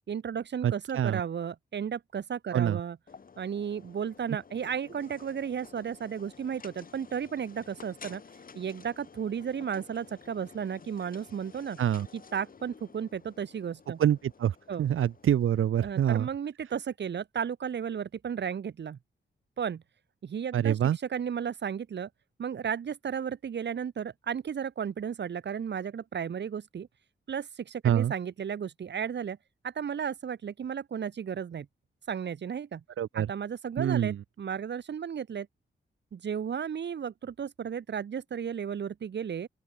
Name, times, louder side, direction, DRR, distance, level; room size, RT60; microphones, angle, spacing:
voice 1, 0.1-3.0 3.4-8.2 8.5-11.8 12.1-14.0 14.7-14.8 15.8-19.0 19.6-19.8 20.2-22.1 22.4-26.9 27.3-29.4 29.6-31.7 32.1-32.8 33.1-35.5 36.1-39.5, right 7 dB, 60° right, 1.3 m, -34 dB
voice 2, 0.6-1.2 2.5-2.8 11.8-12.1 14.0-16.3 20.5-21.0 27.8-28.1 33.0-33.3 33.8-34.2, right 10 dB, 85° right, 0.7 m, -26 dB
sound 1, 3.1-15.7, left 5 dB, 45° left, 2.4 m, -52 dB
open air
wide cardioid pair, 160°, 21 cm